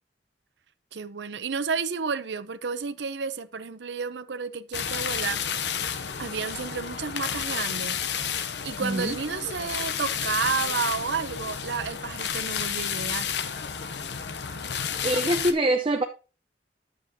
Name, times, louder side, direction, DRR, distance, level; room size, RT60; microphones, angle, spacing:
voice 1, 0.9-5.4 6.2-8.0 8.6-13.3, right 5 dB, 80° right, 0.7 m, -31 dB
sound 1, 4.7-15.5, left 7 dB, 70° left, 0.8 m, -31 dB
voice 2, 8.8-9.1 15.0-16.0, right 1 dB, 30° right, 0.7 m, -24 dB
9.9 x 7.5 x 2.8 m
head